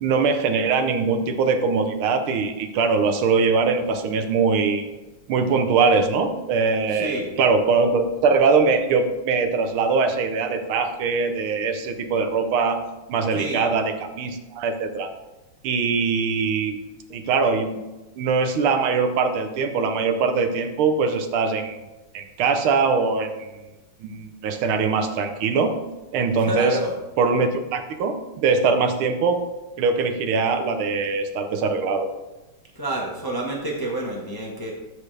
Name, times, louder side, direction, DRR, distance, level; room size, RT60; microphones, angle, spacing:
voice 1, 0.0-4.9 5.3-12.8 13.1-15.1 15.6-16.8 17.1-17.8 18.2-21.8 22.1-23.5 24.0-25.7 26.1-26.8 27.2-29.4 29.8-32.1, right 4 dB, 85° right, 7 dB, 1.7 m, -22 dB
voice 2, 6.9-7.3 13.3-13.7 26.4-26.9 32.7-34.7, right 1 dB, 15° left, -2 dB, 0.8 m, -28 dB
13.5 x 5.0 x 3.3 m, 1.1 s
omnidirectional pair, 2.3 m